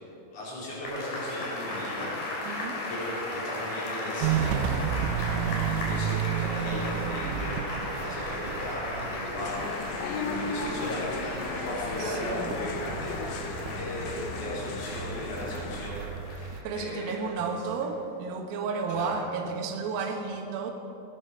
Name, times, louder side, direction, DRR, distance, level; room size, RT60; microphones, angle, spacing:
voice 1, 0.1-9.7 10.0-17.5 18.9-19.2, left 1 dB, 35° left, -7 dB, 4.5 m, -37 dB
sound 1, 0.8-17.4 17.8-17.9, left 2 dB, 60° left, 4.2 m, -36 dB
voice 2, 2.5-2.8 10.9-11.1 12.0-12.5 16.6-20.7, right 5 dB, 70° right, 2 dB, 2.3 m, -32 dB
Walk footsteps, 4.2-16.6, right 9 dB, 90° right, 3.2 m, -33 dB
sound 2, 9.4-15.9, left 5 dB, 80° left, 3.0 m, -36 dB
17.5 x 10.0 x 5.5 m, 2.7 s
omnidirectional pair, 5.7 m